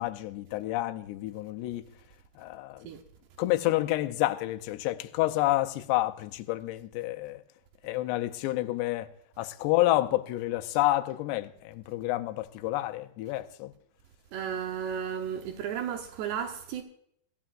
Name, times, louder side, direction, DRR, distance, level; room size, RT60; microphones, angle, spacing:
voice 1, 0.0-1.9 2.4-2.9 3.4-7.4 7.8-13.7, left 16 dB, 85° left, 2.8 m, -29 dB
voice 2, 14.3-16.8, right 8 dB, 80° right, 3.0 m, -33 dB
24.5 x 14.0 x 2.5 m
omnidirectional pair, 4.9 m